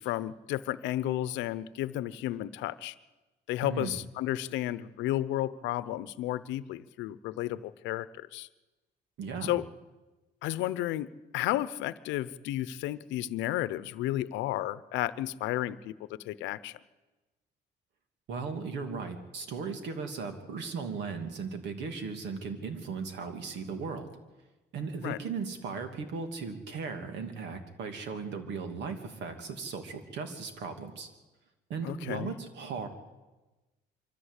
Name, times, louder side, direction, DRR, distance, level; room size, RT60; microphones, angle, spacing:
voice 1, 0.0-2.9 3.5-8.5 9.4-9.6 10.4-16.8 25.0-25.2 31.8-32.3, left 14 dB, 85° left, 16 dB, 0.8 m, -32 dB
voice 2, 3.6-3.9 9.2-9.6 18.3-24.1 24.7-31.1 31.7-32.9, right 5 dB, 75° right, 7 dB, 2.8 m, -37 dB
24.0 x 14.5 x 8.3 m, 1.2 s
cardioid pair, 120°, 18 cm